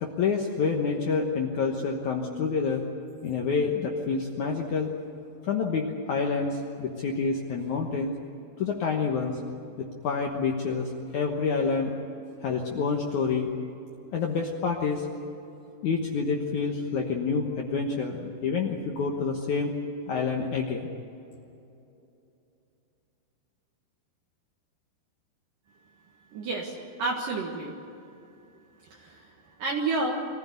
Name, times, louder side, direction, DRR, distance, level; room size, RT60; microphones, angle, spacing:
voice 1, 0.0-2.8 3.2-4.9 5.4-8.1 8.6-9.4 9.8-11.9 12.4-13.5 14.1-15.1 15.8-19.7 20.1-20.9, left 5 dB, 60° left, 1 dB, 2.2 m, -28 dB
voice 2, 26.3-27.7 28.8-30.3, right 3 dB, 60° right, -2 dB, 3.0 m, -31 dB
24.0 x 15.5 x 9.4 m, 2.8 s
omnidirectional pair, 4.7 m